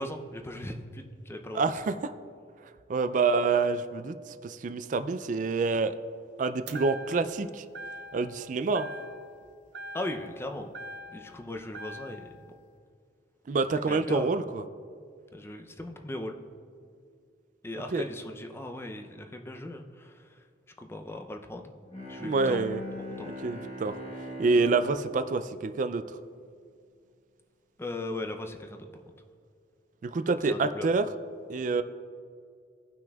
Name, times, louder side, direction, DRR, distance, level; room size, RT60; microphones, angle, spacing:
voice 1, 0.0-1.6 9.9-10.7 11.1-12.3 13.9-14.3 15.3-16.4 17.6-20.4 20.8-21.7 22.1-22.6 23.2-23.3 27.8-29.0 30.5-30.9, left 1 dB, 15° left, 4 dB, 0.5 m, -38 dB
voice 2, 1.5-1.9 2.9-5.9 6.4-7.6 8.1-8.9 13.5-14.6 17.9-18.0 22.2-22.8 23.4-23.9 24.4-26.0 30.0-31.0 31.5-31.8, right 4 dB, 45° right, 10 dB, 0.3 m, -27 dB
sound 1, 6.7-7.4 7.7-8.4 8.7-9.4 9.7-11.4 11.7-12.4, right 1 dB, 65° right, 0.7 m, -43 dB
Bowed string instrument, 21.8-26.7, left 1 dB, 35° left, 1.2 m, -41 dB
17.0 x 5.9 x 2.3 m, 2.3 s
head